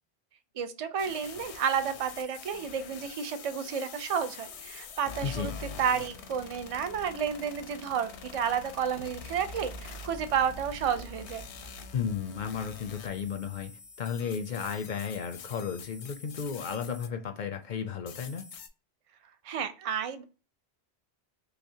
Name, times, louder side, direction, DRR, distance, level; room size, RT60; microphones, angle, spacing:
voice 1, 0.6-5.5 5.8-11.4 19.4-20.2, right 7 dB, 50° right, 0.4 m, -31 dB
sound 1, 1.0-17.2 17.7-18.7, left 6 dB, 85° left, 0.9 m, -45 dB
voice 2, 5.2-5.6 11.9-18.5, left 7 dB, 55° left, 0.5 m, -34 dB
sound 2, 8.9-13.8 14.3-14.4, right 2 dB, 80° right, 0.9 m, -48 dB
5.6 x 2.1 x 2.7 m
omnidirectional pair, 1.1 m